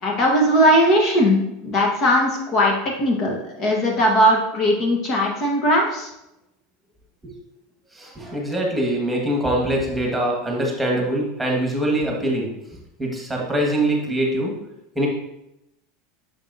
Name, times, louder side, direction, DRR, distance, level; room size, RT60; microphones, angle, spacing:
voice 1, 0.0-2.7 3.0-6.1, equal, 45° left, 0 dB, 1.2 m, -19 dB
voice 2, 7.9-12.5 13.0-14.5 14.9-15.1, right 1 dB, 10° right, -1 dB, 1.6 m, -23 dB
6.3 x 5.4 x 2.7 m, 0.86 s
hypercardioid pair, 105°, 0 cm